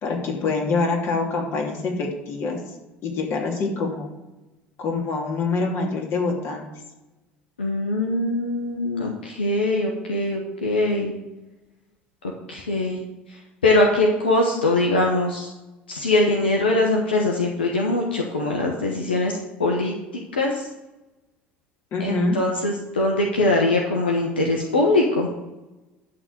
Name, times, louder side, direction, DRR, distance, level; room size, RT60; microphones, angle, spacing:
voice 1, 0.0-2.6 3.0-4.1 4.8-6.7 21.9-22.4, left 3 dB, 50° left, 1 dB, 2.9 m, -25 dB
voice 2, 7.6-11.1 12.5-13.0 13.3-15.5 15.9-19.9 20.3-20.7 22.0-25.3, left 2 dB, 90° left, 0 dB, 1.2 m, -22 dB
12.0 x 4.0 x 7.8 m, 1.0 s
hypercardioid pair, 65°, 5 cm